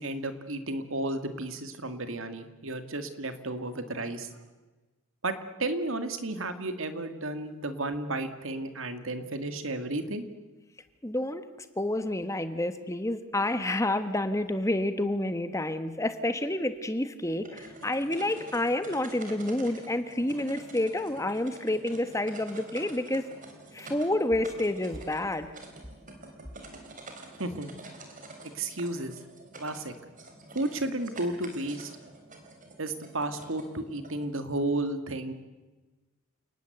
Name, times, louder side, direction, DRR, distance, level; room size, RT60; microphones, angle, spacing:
voice 1, 0.0-4.4 5.2-10.2 27.4-27.7 28.5-29.2 29.6-29.9 30.5-31.9 32.8-35.3, right 2 dB, 65° right, 9 dB, 2.3 m, -33 dB
voice 2, 11.0-11.4 11.8-23.3 23.7-25.5, left 1 dB, 15° left, 10 dB, 1.2 m, -29 dB
sound 1, 17.3-34.3, right 2 dB, 35° right, 3.9 m, -48 dB
29.0 x 19.5 x 8.1 m, 1.2 s
head